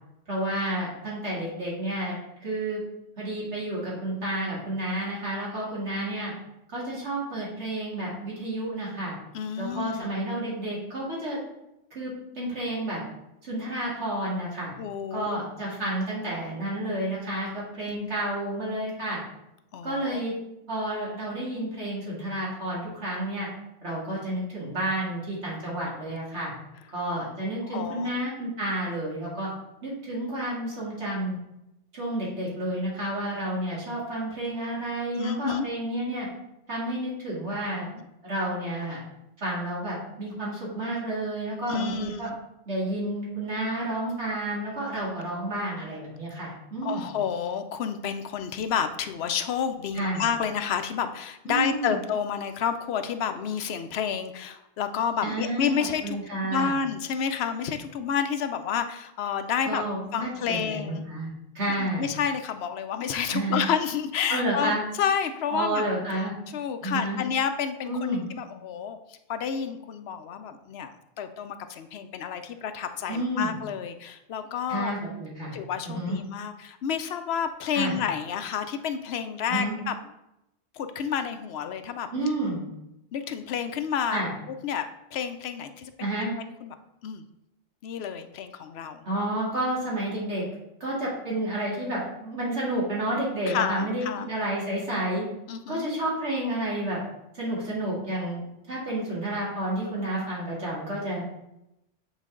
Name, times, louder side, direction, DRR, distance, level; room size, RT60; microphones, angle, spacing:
voice 1, 0.3-2.2 2.4-2.8 3.2-6.3 6.7-9.1 9.6-11.4 11.9-13.0 13.4-14.7 15.1-19.2 19.8-20.3 20.7-23.5 23.8-26.5 26.9-29.5 29.8-31.3 31.9-36.3 36.7-37.9 38.2-39.0 39.4-42.3 42.7-47.1 49.9-50.2 51.5-52.0 55.2-55.7 56.0-56.7 59.7-61.3 61.5-62.1 63.3-63.6 64.3-64.8 65.5-66.3 66.8-67.2 67.8-68.2 73.1-73.6 74.7-75.6 75.8-76.2 77.7-78.0 79.5-79.8 82.1-82.7 84.1-84.3 86.0-86.3 89.1-90.4 90.8-95.2 95.7-97.0 97.3-98.4 98.7-101.2, right 1 dB, 70° right, -6 dB, 2.4 m, -30 dB
voice 2, 9.3-10.1 14.8-15.4 17.9-18.1 19.7-20.2 27.7-28.1 35.0-35.7 37.9-38.0 41.7-42.2 46.8-56.2 56.4-59.8 60.1-61.0 61.8-65.8 66.1-66.2 66.5-70.9 71.2-74.9 75.5-80.0 80.7-82.1 83.1-84.2 84.5-86.1 86.4-86.7 87.0-87.2 87.8-89.0 93.5-94.3 95.5-95.9, left 7 dB, 65° left, 9 dB, 0.8 m, -30 dB
8.2 x 4.1 x 3.7 m, 0.87 s
omnidirectional pair, 1.2 m